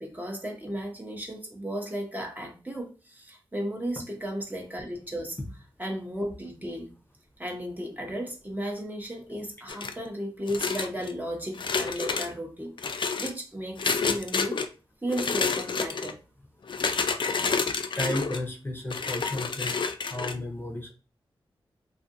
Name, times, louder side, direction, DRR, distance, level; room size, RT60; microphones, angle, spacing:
voice 1, 0.0-5.4 5.8-6.9 7.4-12.7 13.2-14.6 15.0-16.2, equal, 20° right, 0.8 m, -34 dB
sound 1, 9.7-10.1 10.5-11.1 11.5-12.3 12.8-13.3 13.8-14.7 15.1-16.1 16.7-18.4 18.9-20.3, left 5 dB, 55° left, 0.3 m, -29 dB
voice 2, 18.0-19.7 20.1-20.9, left 1 dB, 20° left, 0.6 m, -33 dB
2.6 x 2.5 x 2.5 m
cardioid pair, 60°, 10 cm